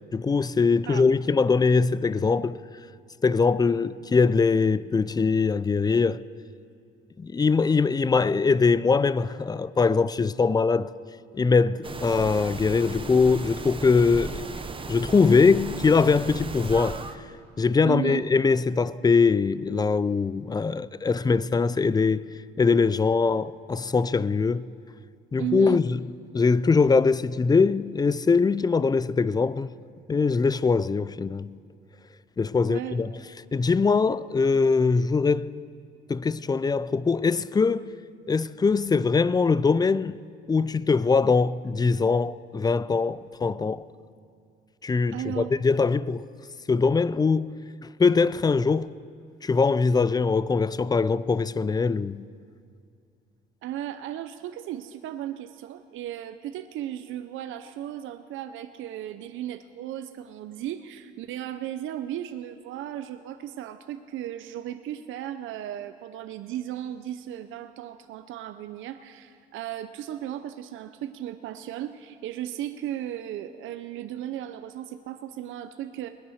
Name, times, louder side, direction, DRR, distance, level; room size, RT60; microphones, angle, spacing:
voice 1, 0.1-2.6 3.2-6.2 7.2-10.9 11.3-14.4 14.9-17.0 17.6-22.2 22.6-24.7 25.3-26.0 26.3-29.7 30.1-31.5 32.4-33.1 33.5-35.5 36.1-37.9 38.3-40.2 40.5-43.9 44.8-46.2 46.7-47.5 48.0-48.9 49.4-52.3, left 4 dB, 20° left, 0.4 m, -22 dB
sound 1, 11.8-17.2, right 4 dB, 25° right, 0.9 m, -36 dB
voice 2, 17.8-18.2 25.4-25.8 32.6-33.2 45.1-45.5 53.6-76.1, right 12 dB, 85° right, 0.6 m, -35 dB
20.5 x 9.7 x 6.5 m
cardioid pair, 90°, 20 cm